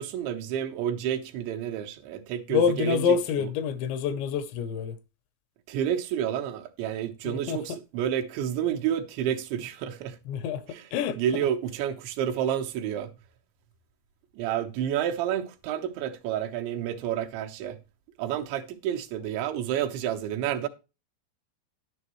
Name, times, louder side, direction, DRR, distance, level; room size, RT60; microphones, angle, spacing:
voice 1, 0.0-3.2 5.7-10.2 10.7-10.9 11.2-13.1 14.3-17.8 18.2-20.7, right 10 dB, 85° right, 3.4 m, -30 dB
voice 2, 2.5-5.0 7.2-7.8 10.3-11.5, left 6 dB, 85° left, 3.2 m, -27 dB
11.0 x 10.5 x 3.1 m
omnidirectional pair, 5.0 m